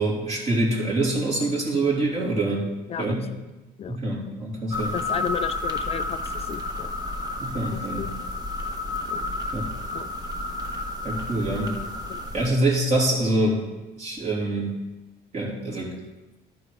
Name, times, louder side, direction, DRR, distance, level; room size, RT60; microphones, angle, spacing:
voice 1, 0.0-2.7 3.0-3.3 3.9-4.9 7.4-8.1 9.5-9.6 11.0-11.8 12.3-13.6 14.0-14.8 15.3-15.9, right 2 dB, 40° right, -4 dB, 3.2 m, -25 dB
sound 1, 4.7-12.5, left 2 dB, 25° right, 1.2 m, -31 dB
voice 2, 4.9-6.9 8.0-8.1 9.1-9.3 9.9-10.1 12.1-12.5, left 8 dB, 35° left, 9 dB, 0.3 m, -33 dB
13.0 x 4.8 x 4.8 m, 1.1 s
cardioid pair, 110°, 17 cm